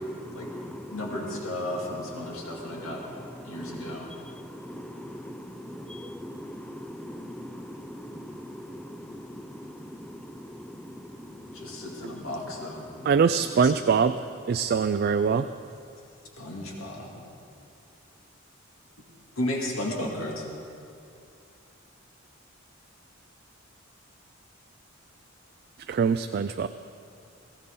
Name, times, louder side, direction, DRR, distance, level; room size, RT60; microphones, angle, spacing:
voice 1, 0.0-14.3, equal, 5° left, 0.6 m, -42 dB
voice 2, 0.9-3.0 3.4-4.1 11.5-12.9 13.6-13.7 16.4-17.2 19.4-20.5, left 1 dB, 85° left, 2.3 m, -34 dB
voice 3, 13.1-14.1 14.5-15.5 25.9-26.7, right 6 dB, 50° right, 0.3 m, -23 dB
19.0 x 15.5 x 3.8 m
head